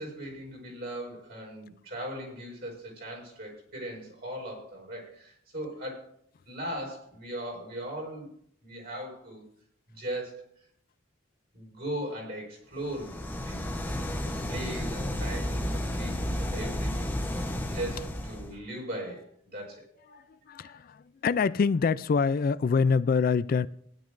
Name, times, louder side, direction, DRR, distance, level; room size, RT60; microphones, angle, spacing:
voice 1, 0.0-6.1 6.4-8.3 8.6-9.4 9.9-10.4 11.5-13.2 13.4-13.7 14.5-17.1 17.7-20.2 20.5-20.8, right 1 dB, 55° right, -1 dB, 5.2 m, -38 dB
sound 1, 12.8-18.5, left 1 dB, 10° left, 0.9 m, -32 dB
voice 2, 20.1-23.7, left 5 dB, 45° left, 15 dB, 0.3 m, -26 dB
18.5 x 11.0 x 2.6 m, 0.65 s
head